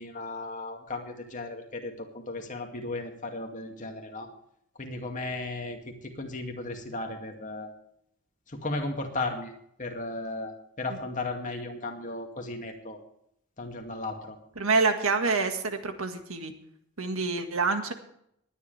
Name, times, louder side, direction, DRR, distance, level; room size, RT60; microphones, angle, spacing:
voice 1, 0.0-4.3 4.8-7.7 8.5-9.5 9.8-13.0 13.6-14.4, left 2 dB, 35° left, 3 dB, 2.3 m, -35 dB
voice 2, 14.5-16.5 17.0-17.9, right 4 dB, 75° right, 7 dB, 1.7 m, -27 dB
19.5 x 10.5 x 3.4 m, 0.73 s
head